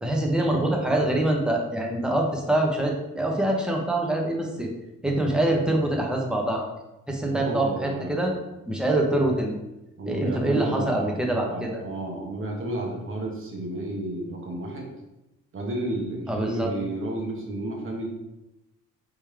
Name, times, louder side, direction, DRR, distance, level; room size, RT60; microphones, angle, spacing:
voice 1, 0.0-4.7 5.0-6.7 7.1-8.3 8.7-9.6 10.1-11.8 16.3-16.7, right 1 dB, 5° right, 0 dB, 0.9 m, -25 dB
voice 2, 7.2-8.4 10.0-14.9 15.5-18.1, right 1 dB, 45° right, 0 dB, 1.3 m, -32 dB
4.3 x 3.6 x 3.3 m, 0.94 s
cardioid pair, 90°, 30 cm